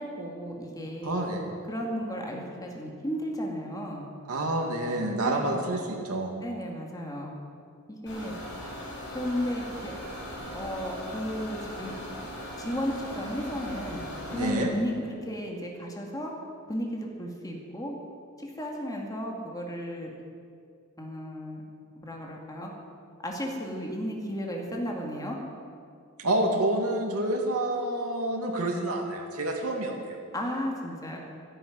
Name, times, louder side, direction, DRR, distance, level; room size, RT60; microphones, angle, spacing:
voice 1, 0.0-1.3 1.7-4.0 5.2-5.6 6.4-7.3 7.9-8.3 9.1-9.9 10.5-11.9 12.6-14.0 14.3-16.3 16.7-17.9 18.4-20.1 21.0-21.6 22.0-22.7 23.2-25.4 30.3-31.2, equal, 15° left, 0 dB, 2.1 m, -34 dB
voice 2, 1.0-1.4 4.3-6.3 14.3-14.7 26.2-30.2, right 1 dB, 85° right, 1 dB, 2.1 m, -28 dB
sound 1, 8.1-14.5, left 1 dB, 55° left, 5.0 m, -39 dB
12.5 x 11.0 x 9.3 m, 2.3 s
head